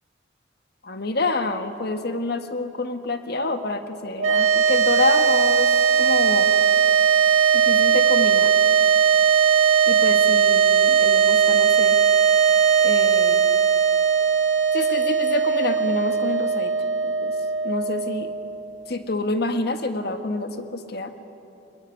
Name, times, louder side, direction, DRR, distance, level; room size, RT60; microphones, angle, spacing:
voice 1, 0.8-5.7 6.0-6.5 7.5-8.5 9.9-12.0 12.8-13.4 14.7-16.7 17.0-17.3 17.6-18.3 18.9-21.1, left 2 dB, 55° left, 8 dB, 1.5 m, -27 dB
sound 1, 4.2-18.6, right 7 dB, 85° right, 2.3 m, -19 dB
22.0 x 21.0 x 9.8 m, 2.9 s
head